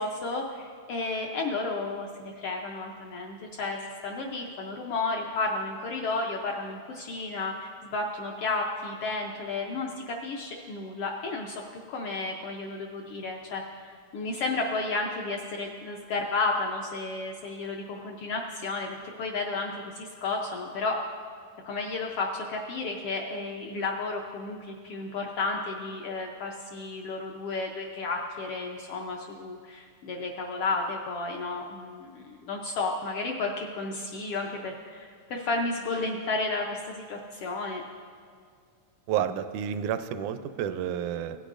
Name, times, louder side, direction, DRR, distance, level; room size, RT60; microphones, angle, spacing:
voice 1, 0.0-11.6 11.9-21.0 21.6-37.8, left 3 dB, 80° left, 0 dB, 1.3 m, -32 dB
voice 2, 39.1-41.4, right 9 dB, 85° right, 10 dB, 2.0 m, -30 dB
17.0 x 10.0 x 2.5 m, 2.2 s
omnidirectional pair, 3.4 m